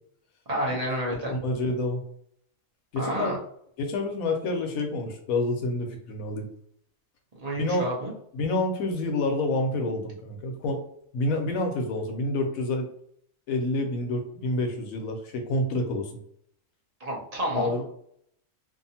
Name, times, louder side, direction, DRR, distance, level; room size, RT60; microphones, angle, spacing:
voice 1, 0.5-1.3 2.9-3.4 7.4-8.1 17.0-17.8, right 1 dB, 40° right, -3 dB, 0.6 m, -29 dB
voice 2, 1.3-2.0 2.9-3.3 3.8-6.5 7.6-7.9 8.3-10.8 11.1-12.9 13.5-16.1 17.5-17.8, left 2 dB, 90° left, 4 dB, 1.1 m, -28 dB
2.7 x 2.5 x 2.7 m, 0.67 s
omnidirectional pair, 1.4 m